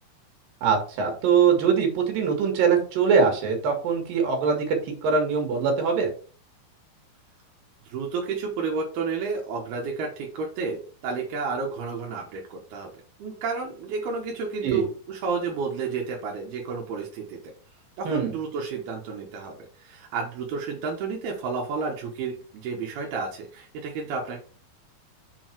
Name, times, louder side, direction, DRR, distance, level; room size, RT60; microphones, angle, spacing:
voice 1, 0.6-4.8 5.0-6.1 14.6-14.8 18.1-18.3, right 6 dB, 65° right, 2 dB, 3.5 m, -22 dB
voice 2, 7.9-12.9 13.2-17.4 18.0-24.4, right 4 dB, 85° right, -1 dB, 3.2 m, -31 dB
7.0 x 4.6 x 4.5 m, 0.40 s
omnidirectional pair, 4.3 m